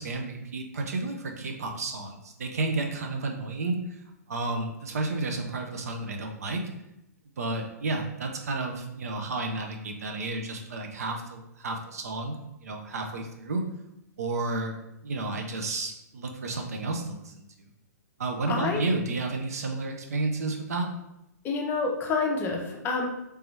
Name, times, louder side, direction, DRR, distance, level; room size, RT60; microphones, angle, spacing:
voice 1, 0.0-4.0 4.3-6.7 7.4-13.7 14.2-14.8 15.0-17.7 18.2-20.9, right 2 dB, 60° right, 3 dB, 0.6 m, -31 dB
voice 2, 18.5-18.9 21.4-23.1, left 4 dB, 20° left, 1 dB, 0.6 m, -28 dB
3.3 x 2.9 x 3.3 m, 0.87 s
figure-of-eight pair, 115°, 9 cm